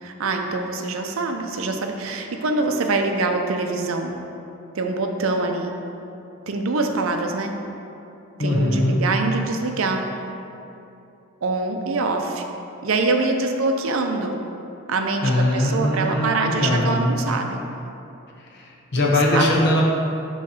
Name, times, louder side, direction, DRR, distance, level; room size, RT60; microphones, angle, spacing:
voice 1, 0.0-4.1 4.7-5.7 6.5-7.5 8.4-10.1 11.4-12.4 12.8-14.4 14.9-17.6 19.1-19.5, right 3 dB, 70° right, 4 dB, 0.5 m, -24 dB
voice 2, 8.4-9.0 15.2-17.0 18.5-18.6 18.9-19.8, left 1 dB, 55° left, -2 dB, 0.9 m, -20 dB
6.5 x 3.2 x 5.5 m, 2.8 s
head